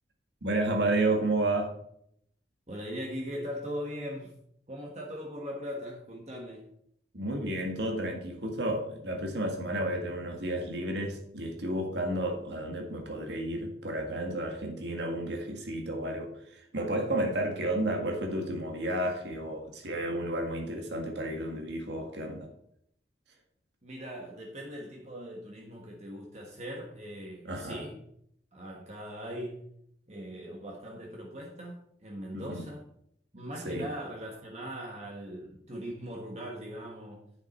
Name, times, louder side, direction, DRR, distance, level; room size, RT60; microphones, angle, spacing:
voice 1, 0.4-1.7 7.1-22.5 27.4-27.8 32.3-32.7 33.7-33.9, right 1 dB, 70° right, 2 dB, 1.8 m, -32 dB
voice 2, 2.7-4.3 4.7-6.7 23.8-28.0 28.5-29.7 30.1-32.8 33.3-37.2, equal, 35° right, -1 dB, 1.5 m, -40 dB
9.8 x 7.3 x 4.4 m, 0.70 s
head